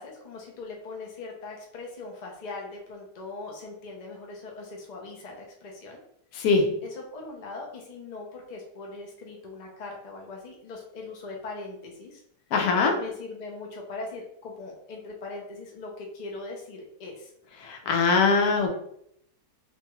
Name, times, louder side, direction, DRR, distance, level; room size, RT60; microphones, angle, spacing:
voice 1, 0.0-6.0 6.8-12.2 13.0-17.3 17.8-18.1, left 3 dB, 60° left, -1 dB, 0.4 m, -40 dB
voice 2, 6.3-6.8 12.5-13.0 17.6-18.7, left 4 dB, 80° left, 3 dB, 1.1 m, -22 dB
2.9 x 2.3 x 3.0 m, 0.72 s
omnidirectional pair, 1.6 m